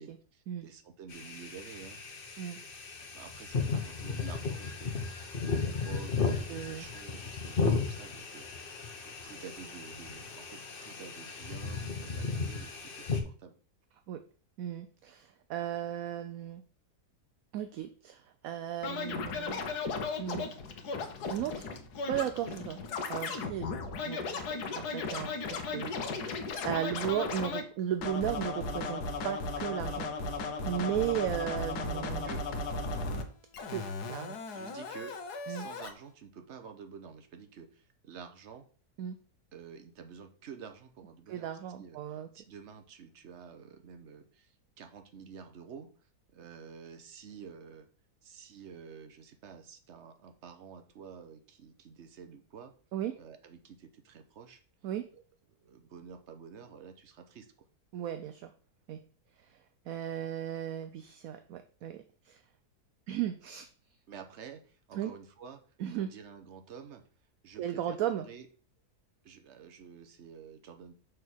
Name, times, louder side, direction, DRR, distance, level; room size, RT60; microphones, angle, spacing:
voice 1, 0.0-2.0 3.1-13.6 31.9-32.5 34.5-35.2 35.4-38.7 39.5-41.5 41.8-45.9 46.3-47.9 48.2-52.7 53.2-54.6 55.6-57.5 64.1-65.6 65.9-67.0 67.4-68.5 69.2-70.9, right 6 dB, 50° right, 7 dB, 1.1 m, -50 dB
sound 1, 1.1-13.2, left 4 dB, 40° left, 1.0 m, -35 dB
voice 2, 6.5-6.8 14.1-14.2 14.6-16.6 17.5-19.6 20.2-20.5 21.3-21.7 22.1-22.8 23.1-23.7 24.0-26.3 26.6-30.1 30.7-32.3 33.7-34.4 35.5-35.7 39.0-39.2 41.3-42.3 52.9-53.2 54.8-55.1 57.9-58.5 58.9-59.0 59.5-59.6 59.9-62.4 63.1-63.7 64.9-65.1 65.8-66.1 67.6-68.3, right 10 dB, 70° right, 9 dB, 0.9 m, -35 dB
Scratching (performance technique), 18.8-27.6 28.0-33.2 33.5-35.9, left 3 dB, 80° left, 1.5 m, -36 dB
6.3 x 3.7 x 6.2 m, 0.42 s
omnidirectional pair, 1.7 m